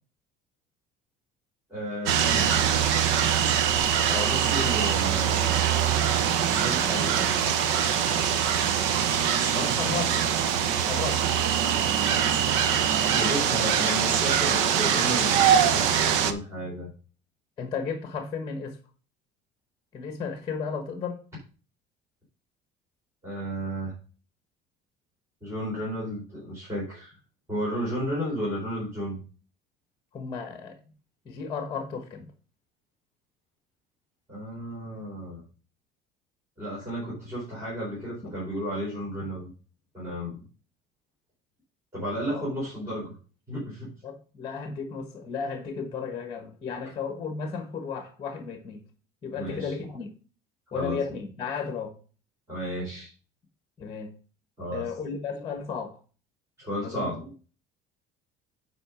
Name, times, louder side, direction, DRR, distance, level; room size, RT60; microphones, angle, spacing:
voice 1, 1.7-2.7 4.2-5.4 6.5-7.5 9.5-9.7 13.1-16.9 23.2-24.0 25.4-27.2 27.5-29.2 34.3-35.4 36.6-39.5 39.9-40.4 41.9-43.2 43.5-43.9 49.3-49.7 50.7-51.0 52.5-53.1 54.6-54.9 56.6-57.3, equal, 15° right, -8 dB, 4.5 m, -33 dB
sound 1, 2.1-16.3, right 8 dB, 80° right, 1.0 m, -23 dB
voice 2, 9.6-10.1 10.8-11.2 17.6-18.8 19.9-21.2 30.1-30.8 31.2-32.3 38.2-38.3 42.3-42.4 44.0-48.8 49.2-50.1 50.7-52.0 53.8-54.1 54.7-56.0 56.8-57.1, left 5 dB, 25° left, 6 dB, 1.3 m, -34 dB
8.9 x 4.9 x 5.0 m, 0.37 s
cardioid pair, 165°, 19 cm